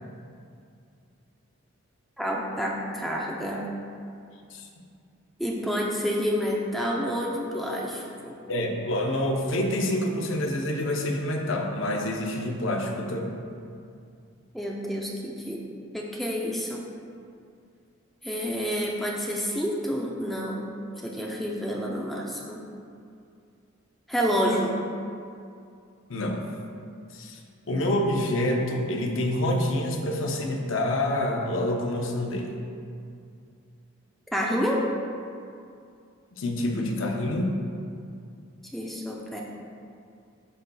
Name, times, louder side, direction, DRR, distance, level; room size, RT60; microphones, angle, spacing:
voice 1, 2.2-3.7 5.4-8.4 14.5-15.7 15.9-16.8 18.2-20.8 21.0-22.6 24.1-24.9 34.3-34.8 38.7-39.4, equal, ahead, -3 dB, 0.4 m, -29 dB
voice 2, 8.5-13.3 26.1-26.4 27.1-27.4 27.7-32.5 36.3-37.6, left 1 dB, 65° left, 2 dB, 0.6 m, -27 dB
11.0 x 3.9 x 2.2 m, 2.4 s
head